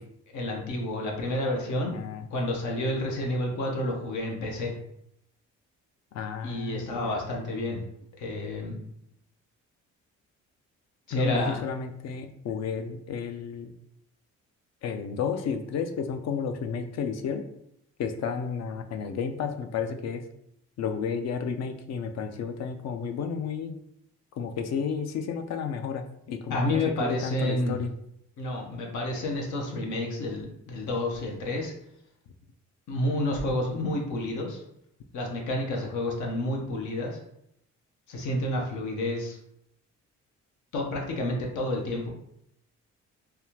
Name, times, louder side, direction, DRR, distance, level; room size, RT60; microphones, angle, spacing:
voice 1, 0.3-1.9 2.3-4.7 6.4-7.8 8.2-8.7 11.1-11.6 26.5-27.8 28.4-31.7 32.9-34.6 35.1-37.2 38.1-39.4 40.7-42.1, left 1 dB, 75° left, 0 dB, 0.9 m, -30 dB
voice 2, 1.9-2.3 6.1-7.2 11.1-13.7 14.8-17.4 18.0-20.2 20.8-23.8 24.4-27.9, left 6 dB, 60° left, 7 dB, 0.5 m, -32 dB
3.4 x 2.3 x 2.8 m, 0.76 s
cardioid pair, 90°, 30 cm